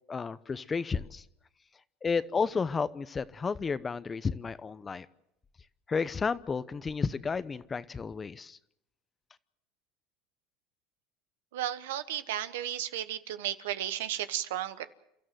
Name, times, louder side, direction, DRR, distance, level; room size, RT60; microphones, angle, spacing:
voice 1, 0.1-1.2 2.0-5.1 5.9-8.6, left 5 dB, 25° left, 16 dB, 0.9 m, -32 dB
voice 2, 11.5-14.9, right 12 dB, 90° right, 12 dB, 1.2 m, -34 dB
30.0 x 13.5 x 7.9 m, 0.82 s
supercardioid pair, 105°, 0 cm